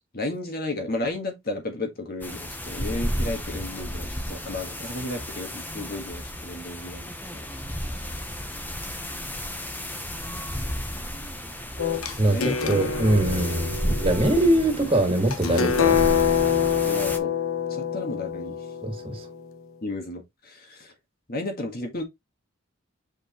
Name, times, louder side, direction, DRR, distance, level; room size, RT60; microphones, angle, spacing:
voice 1, 0.1-7.1 7.3-7.4 12.3-12.8 14.4-14.6 16.8-17.4 17.7-18.6 19.8-20.9 21.3-22.0, left 2 dB, 45° left, 1.6 m, -33 dB
sound 1, 2.2-17.2, equal, 10° left, 0.9 m, -33 dB
sound 2, 11.8-19.5, left 7 dB, 85° left, 1.0 m, -26 dB
voice 2, 12.2-13.7 14.0-16.0 18.8-19.3, right 1 dB, 25° right, 1.9 m, -22 dB
6.3 x 5.0 x 3.0 m
head